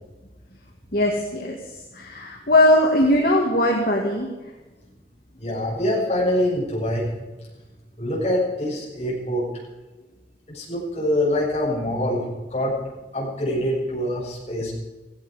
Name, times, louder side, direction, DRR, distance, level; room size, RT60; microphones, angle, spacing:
voice 1, 0.9-1.6 2.0-4.3, left 1 dB, 50° left, 0 dB, 2.1 m, -19 dB
voice 2, 5.3-7.1 8.0-9.5 10.5-12.8 13.1-14.7, left 1 dB, 35° left, -6 dB, 7.3 m, -24 dB
16.5 x 16.5 x 5.1 m, 1.2 s
head